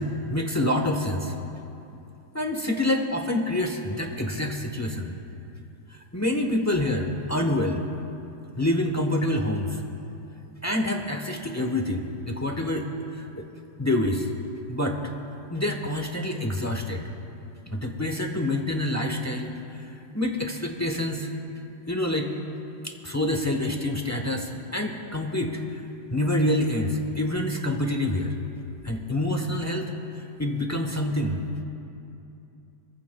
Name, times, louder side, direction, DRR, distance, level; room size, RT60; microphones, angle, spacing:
voice 1, 0.0-1.3 2.3-5.1 5.9-7.8 8.6-9.8 10.6-13.4 13.8-14.3 14.7-15.0 15.5-17.0 17.7-19.9 20.1-21.3 21.9-22.3 22.8-25.8 26.1-28.4 28.8-31.4, left 1 dB, 15° left, 2 dB, 0.6 m, -27 dB
28.0 x 15.0 x 2.3 m, 2.8 s
omnidirectional pair, 2.1 m